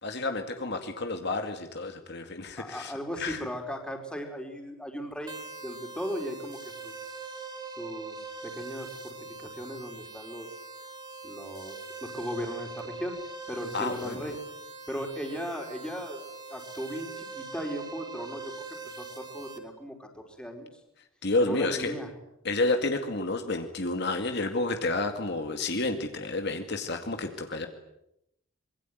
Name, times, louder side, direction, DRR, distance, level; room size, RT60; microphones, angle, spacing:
voice 1, 0.0-3.4 13.7-14.3 21.2-21.9 22.4-27.7, left 2 dB, 55° left, 6 dB, 2.2 m, -30 dB
voice 2, 2.6-5.4 5.6-6.9 7.8-10.6 11.2-13.2 13.5-14.4 14.9-16.2 16.5-20.7 21.4-22.1, equal, 5° left, 3 dB, 4.5 m, -37 dB
sound 1, 5.3-19.6, right 4 dB, 20° right, 3.1 m, -42 dB
25.5 x 23.0 x 9.4 m, 0.83 s
head